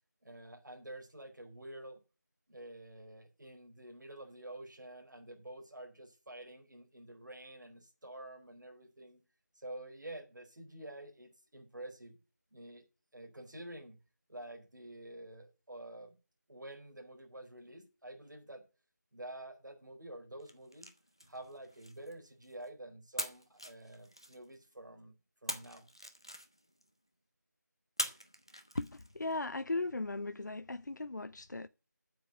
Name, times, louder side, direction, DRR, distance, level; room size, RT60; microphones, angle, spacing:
voice 1, 0.2-2.0 2.5-9.2 9.6-12.2 12.5-12.8 13.1-14.0 14.3-16.1 16.5-18.6 19.1-20.9 21.3-25.1 25.4-25.8, right 1 dB, 75° right, 4.5 m, -49 dB
sound 1, 20.4-22.7 23.2-24.7 25.5-26.9 28.0-29.3, equal, 15° left, 0.5 m, -43 dB
voice 2, 28.7-31.7, left 2 dB, 70° left, 0.6 m, -37 dB
9.4 x 7.0 x 8.0 m
figure-of-eight pair, 180°, 10 cm